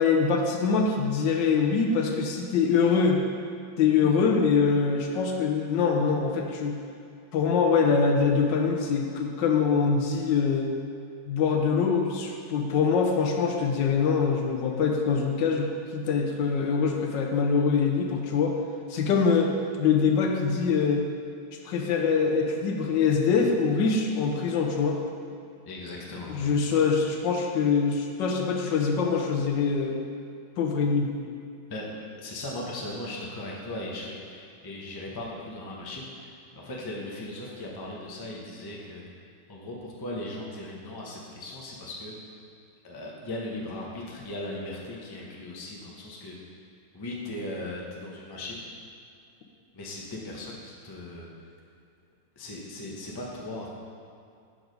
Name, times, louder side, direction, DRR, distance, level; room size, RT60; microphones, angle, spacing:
voice 1, 0.0-3.2 3.8-6.8 7.3-10.7 11.3-18.6 18.9-19.5 19.8-21.0 21.6-25.0 26.3-30.0 30.6-31.1, left 5 dB, 80° left, 2 dB, 1.4 m, -24 dB
voice 2, 25.7-26.5 31.7-31.9 32.2-39.0 39.5-42.3 42.8-46.4 46.9-48.6 49.7-51.3 52.4-53.7, left 1 dB, 25° left, -3 dB, 0.4 m, -38 dB
6.2 x 4.7 x 5.2 m, 2.4 s
omnidirectional pair, 2.0 m